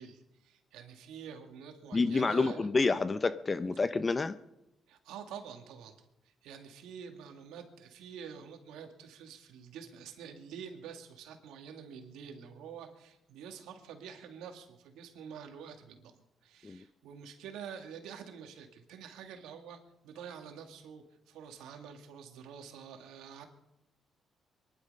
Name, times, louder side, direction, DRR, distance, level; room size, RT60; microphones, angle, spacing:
voice 1, 0.0-2.8 4.9-6.1 6.4-23.4, right 7 dB, 90° right, 2.1 m, -47 dB
voice 2, 1.9-4.3 16.6-16.8, left 3 dB, 30° left, 0.7 m, -28 dB
23.5 x 11.0 x 5.5 m
cardioid pair, 90°, 0 cm